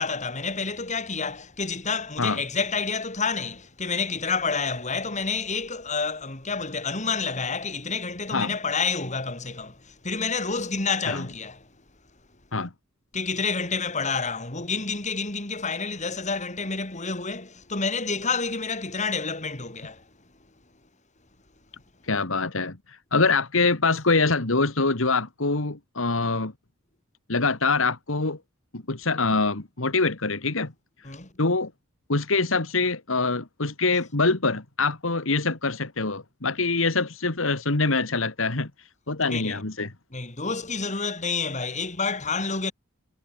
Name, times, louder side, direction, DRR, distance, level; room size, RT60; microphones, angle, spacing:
voice 1, 0.0-11.7 13.1-20.0 31.0-31.3 39.3-39.6 40.1-42.7, left 4 dB, 35° left, 4.9 m, -29 dB
voice 2, 22.1-26.5 27.3-28.4 28.7-30.7 31.4-31.7 32.1-38.7 39.1-39.9, left 3 dB, 80° left, 2.1 m, -24 dB
head